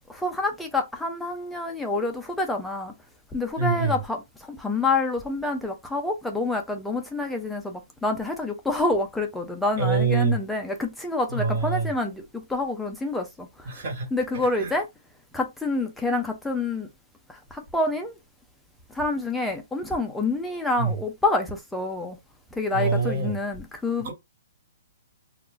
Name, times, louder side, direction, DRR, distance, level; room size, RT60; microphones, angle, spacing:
voice 1, 0.1-2.9 3.3-4.2 4.5-13.5 14.1-14.9 15.3-16.9 17.3-18.2 18.9-22.2 22.6-24.1, left 2 dB, ahead, 0.4 m, -27 dB
voice 2, 3.6-4.0 9.8-10.4 11.3-11.9 13.6-14.1 14.6-14.7 20.8-20.9 22.7-23.3 24.0-24.1, right 5 dB, 35° right, 1.4 m, -25 dB
2.4 x 2.4 x 3.7 m
hypercardioid pair, 175°, 0 cm